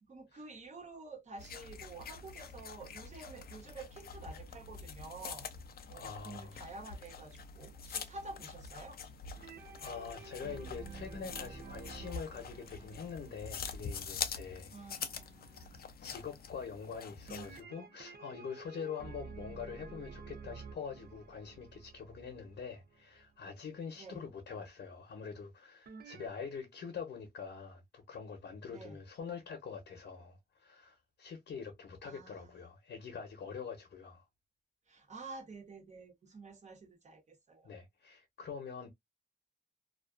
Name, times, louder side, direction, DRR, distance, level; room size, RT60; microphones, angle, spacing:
voice 1, 0.0-5.5 5.9-9.0 14.7-15.8 24.0-24.2 28.7-29.0 32.0-32.6 34.9-37.7, right 3 dB, 40° right, 0.8 m, -50 dB
sound 1, 1.4-17.6, left 6 dB, 60° left, 0.4 m, -45 dB
voice 2, 5.9-6.6 9.8-15.0 16.0-34.2 37.6-38.9, left 6 dB, 85° left, 0.8 m, -45 dB
sound 2, 9.3-14.6 17.3-23.2 25.9-26.3, right 5 dB, 60° right, 0.4 m, -50 dB
2.4 x 2.3 x 2.3 m
wide cardioid pair, 160°, 18 cm